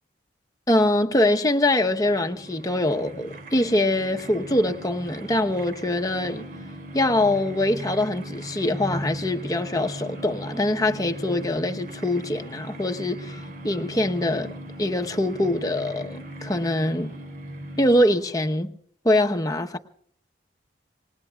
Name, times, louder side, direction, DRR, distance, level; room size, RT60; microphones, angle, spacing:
voice 1, 0.7-6.4 6.9-13.4 13.6-14.5 14.8-17.1 17.8-18.7 19.0-19.8, left 1 dB, 20° left, 1.0 m, -23 dB
sound 1, 1.8-18.5, right 1 dB, 50° right, 2.9 m, -38 dB
27.0 x 20.0 x 2.4 m
head